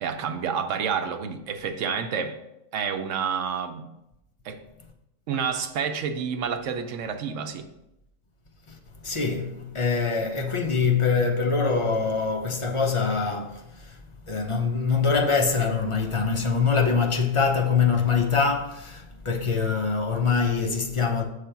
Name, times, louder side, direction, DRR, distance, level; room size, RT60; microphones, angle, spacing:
voice 1, 0.0-2.4 2.7-3.9 4.4-4.6 5.3-7.7, right 6 dB, 75° right, 1.0 m, -29 dB
voice 2, 8.7-21.2, left 5 dB, 35° left, 0.6 m, -24 dB
6.4 x 3.3 x 5.6 m
omnidirectional pair, 1.3 m